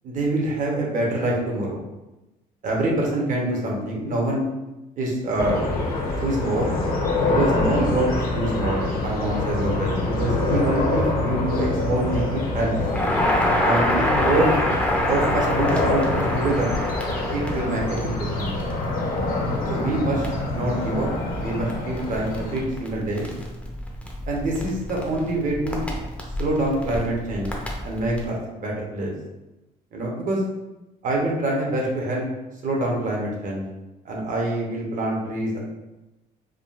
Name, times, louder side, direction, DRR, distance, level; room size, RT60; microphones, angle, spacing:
voice 1, 0.0-1.8 2.6-4.4 5.0-5.7 6.2-6.8 7.2-12.7 13.6-14.5 15.1-16.7 17.3-18.5 19.7-20.3 20.5-21.1 21.4-23.3 24.3-25.9 26.4-27.5 27.8-29.1 29.9-30.5 31.0-32.2 32.6-33.6 34.0-35.6, right 1 dB, 50° right, -2 dB, 0.9 m, -25 dB
sound 1, 5.4-22.6, left 2 dB, 60° left, 0.8 m, -26 dB
Crackle, 12.8-28.3, left 1 dB, 5° left, 0.5 m, -27 dB
3.6 x 2.3 x 2.4 m, 1.0 s
cardioid pair, 110°, 17 cm